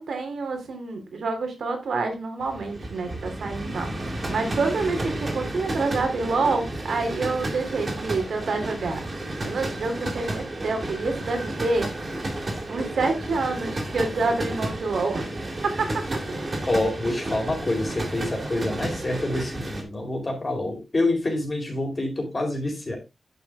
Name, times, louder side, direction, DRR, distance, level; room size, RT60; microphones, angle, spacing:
voice 1, 0.0-9.0 9.4-11.9 12.7-15.3 15.6-16.6, right 3 dB, 80° right, 5 dB, 3.2 m, -27 dB
sound 1, 2.4-19.8, right 1 dB, 35° right, 3.4 m, -32 dB
voice 2, 16.7-23.0, left 2 dB, 30° left, 1 dB, 4.4 m, -27 dB
10.5 x 7.0 x 3.6 m, 0.24 s
wide cardioid pair, 115°, 0 cm